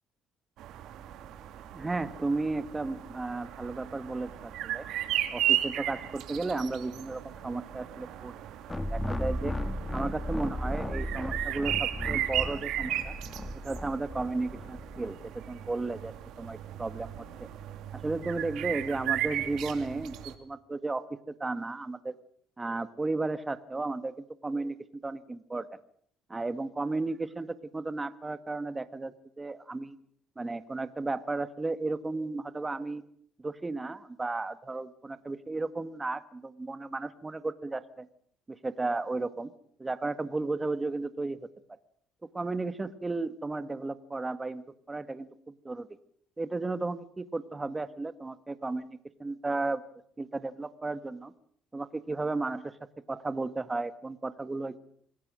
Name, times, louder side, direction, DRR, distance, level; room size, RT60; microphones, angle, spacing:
sound 1, 0.6-20.3, right 12 dB, 75° right, 2.6 m, -35 dB
voice 1, 1.7-4.8 5.3-8.4 8.9-9.5 9.9-13.1 13.6-15.2 15.5-17.5 17.9-22.1 22.6-24.8 25.0-25.7 26.3-30.0 30.3-33.0 33.4-38.1 38.5-39.5 39.8-41.4 42.3-45.9 46.4-49.8 50.2-51.3 51.7-52.8 53.1-54.8, right 3 dB, 20° right, 12 dB, 1.7 m, -34 dB
sound 2, 8.7-15.1, left 1 dB, 15° left, 1.9 m, -35 dB
26.5 x 19.0 x 6.4 m, 0.62 s
cardioid pair, 100°, 0 cm